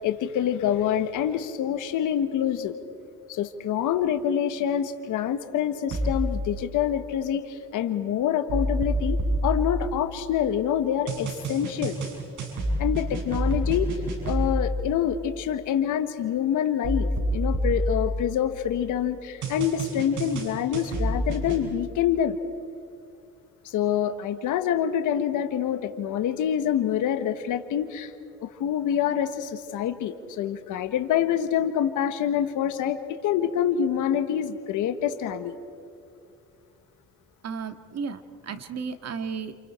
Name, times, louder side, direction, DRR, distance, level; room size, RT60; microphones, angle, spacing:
voice 1, 0.0-2.8 3.3-12.0 12.8-13.9 14.2-22.4 23.6-28.1 28.4-35.5, left 9 dB, 85° left, 8 dB, 1.4 m, -26 dB
sound 1, 5.9-6.4 8.5-10.4 11.1-14.8 16.8-18.7 19.4-21.6, equal, 75° right, 6.2 m, -28 dB
voice 2, 37.4-39.5, right 5 dB, 55° right, 8 dB, 1.9 m, -34 dB
30.0 x 28.0 x 4.4 m, 2.5 s
cardioid pair, 90°, 30 cm